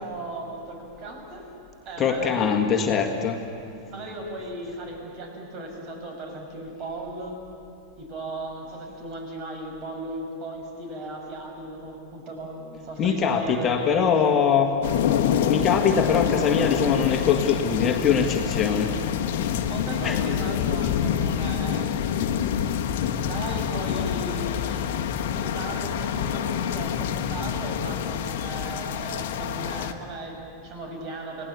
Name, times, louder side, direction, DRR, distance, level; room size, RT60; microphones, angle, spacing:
voice 1, 0.0-1.4 1.9-2.6 3.9-7.4 8.0-14.4 19.7-21.9 23.2-31.5, right 1 dB, 35° right, 3 dB, 5.5 m, -36 dB
voice 2, 2.0-3.4 13.0-14.7 15.5-18.9 20.0-20.2, left 7 dB, 25° left, 3 dB, 1.8 m, -22 dB
sound 1, 14.8-29.9, left 8 dB, 50° left, 1.3 m, -27 dB
29.5 x 17.5 x 8.4 m, 2.6 s
figure-of-eight pair, 90°, 0 cm